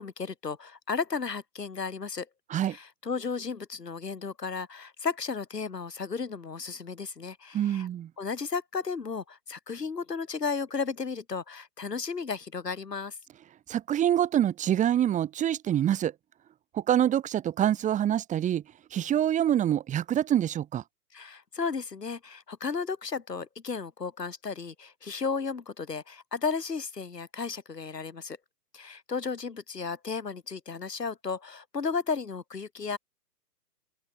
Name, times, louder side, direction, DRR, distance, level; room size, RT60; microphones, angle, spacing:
voice 1, 0.0-2.3 2.7-7.9 8.2-13.1 21.1-28.4 28.7-33.0, left 5 dB, 75° left, 6.5 m, -34 dB
voice 2, 7.5-8.1 13.7-16.1 16.7-18.6 18.9-20.8, right 11 dB, 15° right, 4.2 m, -26 dB
open air
figure-of-eight pair, 130°, 49 cm